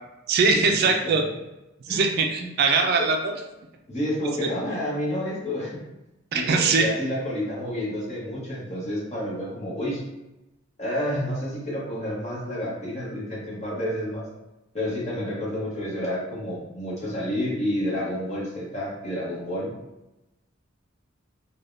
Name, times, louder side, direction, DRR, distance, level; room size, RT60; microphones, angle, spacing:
voice 1, 0.3-1.2 1.9-3.3 6.3-6.9, right 4 dB, 50° right, 3 dB, 0.3 m, -21 dB
voice 2, 3.9-5.8 6.3-10.1 10.8-14.3 14.7-19.7, left 1 dB, 35° left, -5 dB, 1.0 m, -29 dB
3.3 x 2.2 x 2.6 m, 0.95 s
head